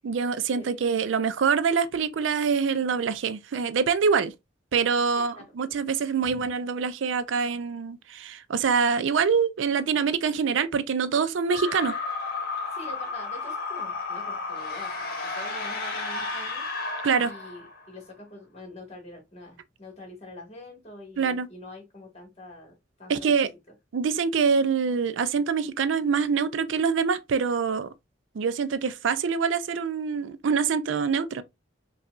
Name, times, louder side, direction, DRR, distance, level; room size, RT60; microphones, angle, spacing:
voice 1, 0.0-4.3 4.7-11.9 17.0-17.3 21.2-21.5 23.1-23.5 23.9-27.9 28.4-31.4, right 6 dB, 85° right, 0.4 m, -25 dB
sound 1, 11.5-17.9, left 3 dB, 55° left, 1.2 m, -33 dB
voice 2, 12.7-16.6 17.2-23.3, left 1 dB, 35° left, 1.7 m, -45 dB
5.3 x 2.4 x 2.4 m
head